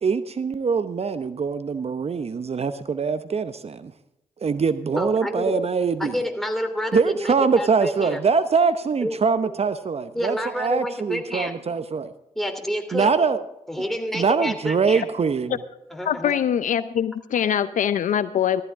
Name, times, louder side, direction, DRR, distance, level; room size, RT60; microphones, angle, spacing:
voice 1, 0.0-3.9 4.4-6.1 6.9-12.1 12.9-13.4 14.1-15.6, right 5 dB, 50° right, 12 dB, 0.8 m, -23 dB
voice 2, 4.9-5.5 6.0-8.2 9.0-9.2 9.4-9.5 10.1-11.5 12.3-13.1 13.7-15.0 15.9-16.3, equal, ahead, 5 dB, 3.1 m, -28 dB
voice 3, 16.1-18.6, left 9 dB, 70° left, 14 dB, 0.6 m, -23 dB
14.0 x 14.0 x 3.6 m, 0.87 s
supercardioid pair, 40°, 14 cm